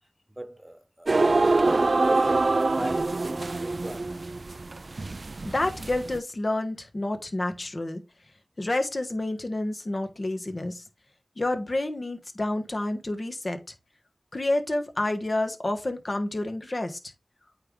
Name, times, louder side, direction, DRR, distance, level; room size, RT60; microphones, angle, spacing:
voice 1, 0.4-4.5, right 1 dB, 20° right, 1.0 m, -39 dB
sound 1, 1.1-6.2, right 3 dB, 65° right, 0.3 m, -25 dB
voice 2, 5.4-8.0 8.6-10.8 11.4-13.6 14.3-17.0, left 2 dB, 55° left, 1.3 m, -29 dB
8.7 x 3.3 x 3.7 m
wide cardioid pair, 50°, 0 cm